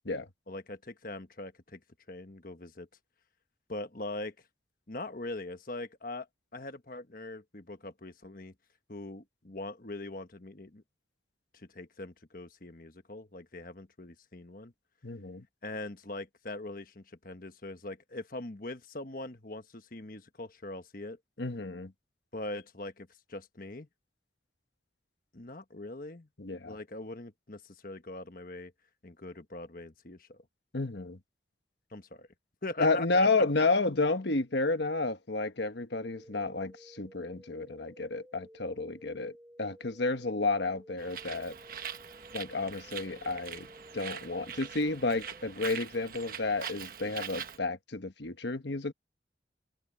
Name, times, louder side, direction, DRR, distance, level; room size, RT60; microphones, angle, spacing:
voice 1, 0.5-1.8 2.1-2.9 3.7-4.3 4.9-6.3 6.5-8.5 8.9-10.8 11.5-14.7 15.6-21.2 22.3-23.9 25.3-26.3 26.7-28.7 29.0-30.4 31.9-32.3 32.6-33.3, left 2 dB, 50° left, 1.4 m, -42 dB
voice 2, 15.0-15.4 21.4-21.9 26.4-26.7 30.7-31.2 32.8-39.3 39.6-41.6 42.3-43.7 43.9-48.9, left 3 dB, 70° left, 1.3 m, -31 dB
sound 1, 36.0-45.5, equal, 10° right, 6.7 m, -55 dB
Bird, 41.0-47.6, right 8 dB, 50° right, 1.2 m, -43 dB
head